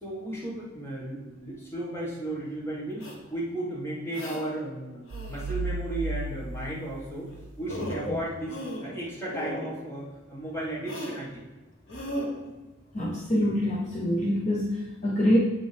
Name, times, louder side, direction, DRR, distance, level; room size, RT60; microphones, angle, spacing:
voice 1, 0.0-7.3 7.6-11.4, right 1 dB, 15° left, -6 dB, 1.6 m, -35 dB
sound 1, 3.0-3.1 4.1-4.4 5.1-5.6 7.3-7.4 7.7-8.1 8.5-9.0 9.3-9.7 10.9-11.2 11.9-12.3, equal, 80° left, 1.3 m, -36 dB
sound 2, 5.1-7.9, right 2 dB, 70° right, 0.5 m, -35 dB
voice 2, 12.9-15.4, equal, 35° left, -4 dB, 0.7 m, -25 dB
7.7 x 5.2 x 3.4 m, 1.1 s
head